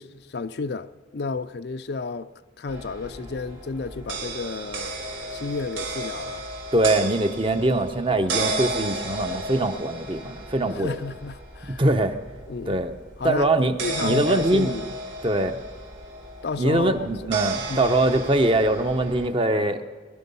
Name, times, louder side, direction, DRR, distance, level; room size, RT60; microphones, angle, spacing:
voice 1, 0.0-2.3 2.6-4.9 5.3-6.5 10.8-11.8 12.5-12.8 13.2-14.9 16.4-17.0 17.2-17.3 17.7-17.9, left 4 dB, 55° left, 0.4 m, -32 dB
sound 1, 2.7-19.3, right 2 dB, 85° right, 3.9 m, -34 dB
voice 2, 6.7-11.0 11.7-12.2 12.7-12.9 13.2-14.7 15.2-15.6 16.6-19.9, right 2 dB, 25° right, 0.7 m, -22 dB
20.0 x 12.0 x 5.4 m
head